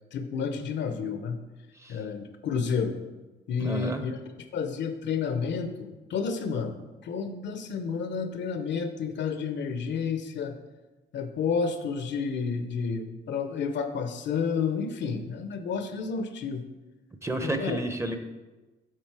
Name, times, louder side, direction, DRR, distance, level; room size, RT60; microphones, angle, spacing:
voice 1, 0.1-1.4 1.9-3.0 3.5-4.2 4.5-6.8 7.0-10.6 11.1-16.6 17.4-17.8, left 5 dB, 65° left, 8 dB, 0.7 m, -30 dB
voice 2, 3.6-4.0 17.2-18.2, right 1 dB, 15° right, 7 dB, 0.7 m, -31 dB
7.5 x 4.1 x 4.7 m, 1.2 s
cardioid pair, 90°, 20 cm